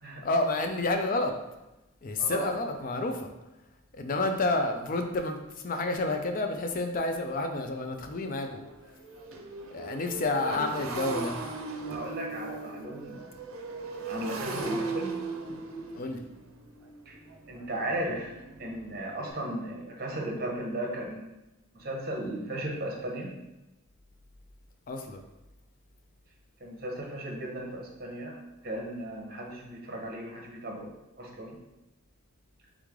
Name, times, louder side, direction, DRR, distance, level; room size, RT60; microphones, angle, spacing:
voice 1, 0.2-1.3 2.0-3.3 3.9-5.4 5.6-8.6 9.7-11.3 15.9-16.2 24.9-25.2, left 2 dB, 40° left, 5 dB, 0.4 m, -29 dB
voice 2, 2.2-2.5 10.4-10.5 11.9-13.2 14.1-15.1 17.1-17.2 17.5-18.3 18.6-21.4 21.7-23.3 26.6-28.4 28.6-30.9 31.2-31.6, right 1 dB, 45° right, 0 dB, 0.8 m, -36 dB
Motorcycle, 6.7-6.8 7.3-7.4 7.7-19.3, right 3 dB, 70° right, 0.5 m, -38 dB
3.6 x 3.2 x 3.6 m, 1.0 s
head